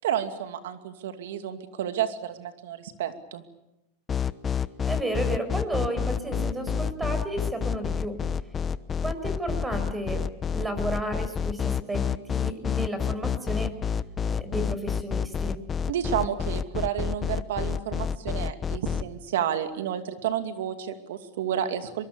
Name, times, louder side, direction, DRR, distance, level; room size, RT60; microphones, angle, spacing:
voice 1, 0.0-3.4 15.9-22.1, right 9 dB, 80° right, 9 dB, 2.5 m, -31 dB
sound 1, 4.1-19.0, left 7 dB, 25° left, 0.9 m, -28 dB
voice 2, 4.8-8.2 9.0-10.2 10.5-12.0 12.3-13.7 14.2-15.6, right 1 dB, 10° right, 9 dB, 5.6 m, -32 dB
23.5 x 23.5 x 8.6 m, 0.91 s
hypercardioid pair, 115°, 0 cm